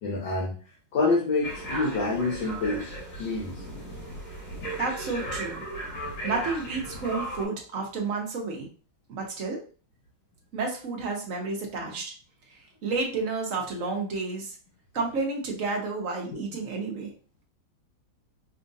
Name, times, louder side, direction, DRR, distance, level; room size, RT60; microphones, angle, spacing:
voice 1, 0.0-0.6 0.9-2.9 3.2-3.6 11.8-11.9 16.3-16.4, left 3 dB, 70° left, -5 dB, 1.6 m, -27 dB
sound 1, 1.4-7.5, right 1 dB, 90° left, 3.0 m, -36 dB
voice 2, 4.8-5.6 6.2-8.7 9.1-9.6 10.5-12.1 12.5-14.6 14.9-17.1, right 3 dB, 50° right, 0 dB, 1.0 m, -31 dB
5.5 x 2.5 x 2.7 m, 0.38 s
omnidirectional pair, 2.2 m